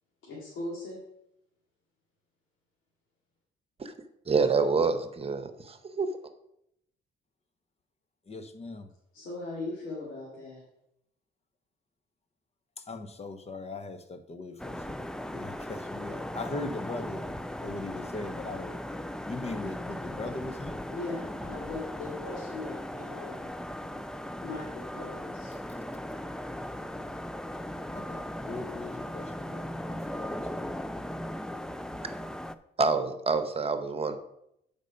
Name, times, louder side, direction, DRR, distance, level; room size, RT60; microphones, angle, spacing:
voice 1, 0.3-1.0 9.1-10.6 20.9-23.5 24.4-25.5, left 2 dB, 80° left, -5 dB, 2.4 m, -39 dB
voice 2, 4.3-6.1 32.8-34.2, right 4 dB, 30° right, 9 dB, 1.0 m, -27 dB
voice 3, 8.3-8.9 12.9-15.0 15.3-17.3 17.6-18.8 19.2-20.9 27.9-30.7, left 2 dB, 30° left, 9 dB, 1.0 m, -39 dB
sound 1, 14.6-32.6, left 1 dB, 5° left, 0.4 m, -38 dB
8.1 x 5.3 x 5.3 m, 0.79 s
cardioid pair, 90°, 20 cm